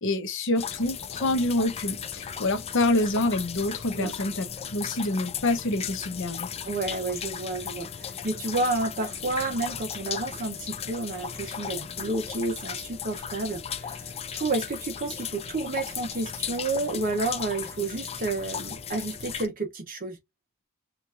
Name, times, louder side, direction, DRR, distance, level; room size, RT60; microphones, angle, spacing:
voice 1, 0.0-4.5 4.7-6.5, left 2 dB, 60° left, 0.8 m, -27 dB
sound 1, 0.6-19.5, left 7 dB, 25° left, 0.4 m, -36 dB
voice 2, 6.6-20.2, right 3 dB, 40° right, 0.7 m, -30 dB
4.5 x 2.4 x 2.4 m
head